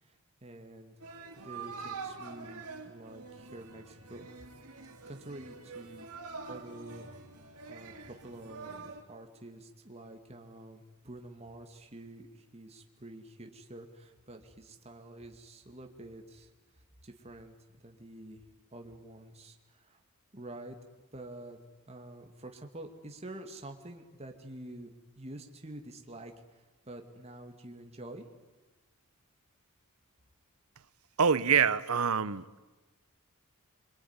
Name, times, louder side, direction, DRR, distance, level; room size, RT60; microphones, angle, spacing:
voice 1, 0.0-1.0 1.4-4.3 5.1-7.1 7.7-16.5 16.7-18.4 18.7-20.0 20.3-20.8 21.1-21.6 21.9-28.3, right 1 dB, 30° right, 4 dB, 2.4 m, -48 dB
sound 1, 1.0-9.0, right 4 dB, 90° right, 3.3 m, -46 dB
voice 2, 31.2-32.5, right 6 dB, 70° right, 17 dB, 0.9 m, -25 dB
25.5 x 24.0 x 9.8 m, 1.2 s
head